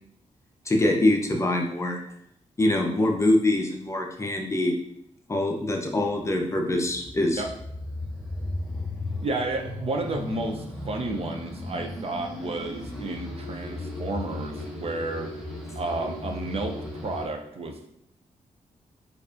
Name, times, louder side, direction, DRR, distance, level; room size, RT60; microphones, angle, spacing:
voice 1, 0.7-2.0 2.6-4.7 5.3-7.4, left 1 dB, 20° left, 1 dB, 0.6 m, -24 dB
sound 1, 5.9-17.2, left 1 dB, 5° right, 1.0 m, -36 dB
voice 2, 9.2-15.3 15.7-16.7 17.0-17.9, right 2 dB, 50° right, 3 dB, 0.5 m, -31 dB
4.7 x 2.6 x 2.5 m, 0.72 s
cardioid pair, 85°, 13 cm